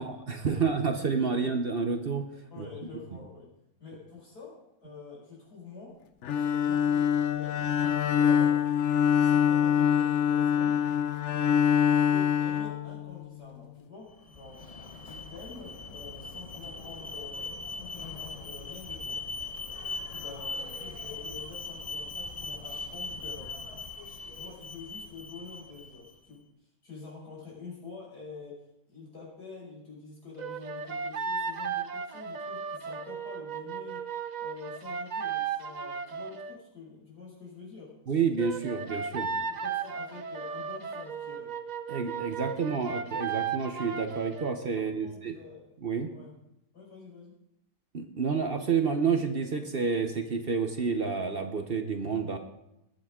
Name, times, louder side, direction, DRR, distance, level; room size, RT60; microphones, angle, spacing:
voice 1, 0.0-2.2 2.6-2.7 38.1-39.3 41.9-45.4 45.8-46.1 47.9-52.4, right 5 dB, 45° right, 6 dB, 1.0 m, -29 dB
voice 2, 2.5-3.5 3.8-6.0 6.3-7.6 8.0-8.6 9.2-10.8 11.8-14.7 15.0-19.2 20.1-23.5 24.3-26.5 26.8-34.1 34.4-38.0 39.5-41.6 44.8-45.8 46.1-46.4 46.7-47.4, left 4 dB, 85° left, -4 dB, 6.4 m, -47 dB
Bowed string instrument, 6.2-13.4, left 8 dB, 60° left, 0.9 m, -25 dB
Alarm, 14.1-26.1, left 3 dB, 35° left, 0.6 m, -40 dB
sound 1, 30.4-36.6 38.4-44.6, right 6 dB, 60° right, 0.4 m, -35 dB
20.0 x 9.0 x 3.7 m, 0.85 s
omnidirectional pair, 1.6 m